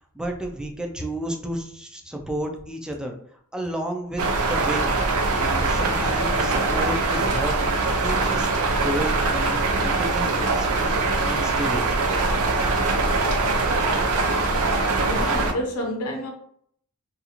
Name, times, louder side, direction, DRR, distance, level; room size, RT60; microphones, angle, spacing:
voice 1, 0.1-3.2 3.5-4.2 4.5-4.9 5.3-8.5 8.7-11.9, right 1 dB, 5° right, 0.3 m, -32 dB
sound 1, 4.2-15.5, right 3 dB, 75° right, 0.5 m, -22 dB
voice 2, 15.0-16.3, left 1 dB, 75° left, 0.7 m, -29 dB
2.5 x 2.3 x 2.8 m
head